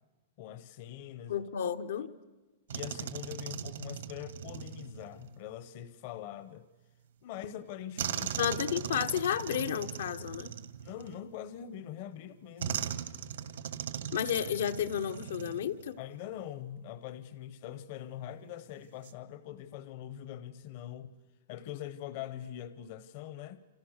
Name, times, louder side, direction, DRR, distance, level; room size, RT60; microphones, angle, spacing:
voice 1, 0.4-1.4 2.7-6.6 7.2-8.4 10.8-12.9 16.0-21.1 21.5-23.7, left 11 dB, 40° left, 0.9 m, -43 dB
voice 2, 1.3-2.1 8.4-10.5 14.1-16.0, left 9 dB, 75° left, 1.2 m, -32 dB
sound 1, 2.7-5.4 8.0-11.5 12.6-16.0 16.2-16.4 18.8-19.1, right 9 dB, 80° right, 1.8 m, -39 dB
29.0 x 28.0 x 6.6 m
supercardioid pair, 170°, 0 cm